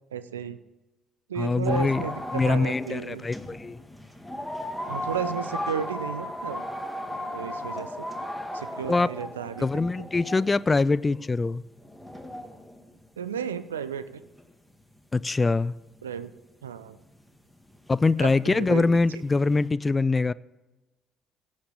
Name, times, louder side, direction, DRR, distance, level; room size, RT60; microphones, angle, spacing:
voice 1, 0.1-0.6 1.3-3.2 4.9-6.6 7.3-8.1 8.5-9.7 10.0-10.1 13.2-14.2 16.0-16.3 16.6-17.0 18.2-18.8, right 8 dB, 85° right, 0.5 m, -33 dB
voice 2, 1.4-2.0 2.3-3.8 8.9-9.1 9.6-11.6 15.1-15.7 17.9-20.3, left 3 dB, 25° left, 0.4 m, -23 dB
sound 1, 1.6-13.5 14.4-14.5 14.7-14.8 15.3-15.4 15.9-16.1 16.5-16.6 16.8-17.4 17.7-19.7, left 1 dB, 5° left, 2.0 m, -36 dB
17.0 x 6.5 x 7.3 m
hypercardioid pair, 50°, 0 cm